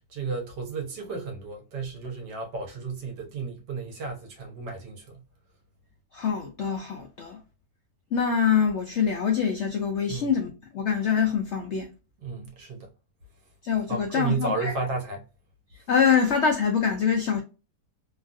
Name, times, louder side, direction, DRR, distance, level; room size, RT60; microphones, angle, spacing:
voice 1, 0.0-5.2 10.1-10.3 12.2-12.9 13.9-15.3, right 4 dB, 80° right, 1.5 m, -33 dB
voice 2, 6.1-7.4 8.1-11.9 13.6-14.7 15.9-17.4, left 7 dB, 80° left, 0.6 m, -24 dB
3.3 x 2.3 x 2.4 m
omnidirectional pair, 1.8 m